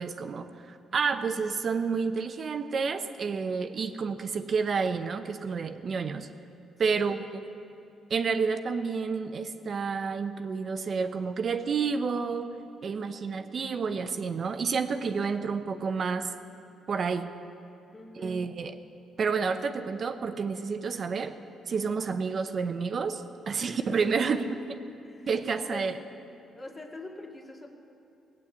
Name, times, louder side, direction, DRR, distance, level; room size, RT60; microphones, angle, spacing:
voice 1, 0.0-6.3 6.8-7.2 8.1-12.6 12.8-16.3 16.9-17.3 18.1-18.8 19.2-21.4 21.7-24.6 25.3-25.9, right 5 dB, 50° right, 9 dB, 0.8 m, -30 dB
voice 2, 17.9-18.4 23.5-23.8 24.1-24.6 25.0-25.3 25.7-26.0 26.6-27.7, left 2 dB, 25° left, 1 dB, 2.0 m, -43 dB
17.5 x 8.4 x 8.3 m, 2.7 s
cardioid pair, 90°, 0 cm